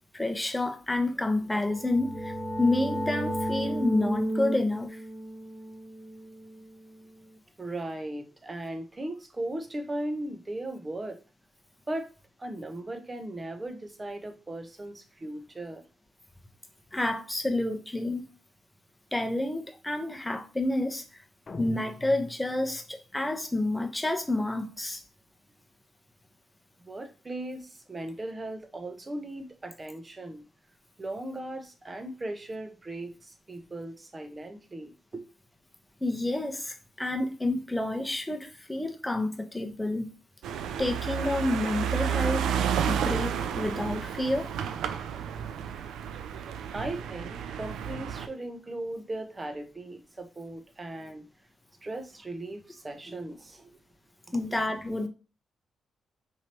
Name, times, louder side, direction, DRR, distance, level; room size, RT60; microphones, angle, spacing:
voice 1, 0.1-5.0 16.9-18.3 19.1-21.2 21.6-25.0 36.0-40.1 40.8-42.5 42.9-44.5 54.3-55.1, left 2 dB, 10° left, 0.9 m, -29 dB
sound 1, 1.5-7.1, equal, 10° right, 1.4 m, -34 dB
voice 2, 7.6-11.2 11.9-12.1 12.4-15.8 26.8-30.4 31.0-35.3 46.7-51.3 51.8-53.7 54.3-54.4, right 1 dB, 30° right, 0.8 m, -37 dB
sound 2, 21.5-22.9, left 3 dB, 45° left, 0.7 m, -40 dB
sound 3, 40.4-48.3, right 8 dB, 80° right, 0.3 m, -31 dB
4.5 x 2.9 x 3.0 m
supercardioid pair, 55°, 0 cm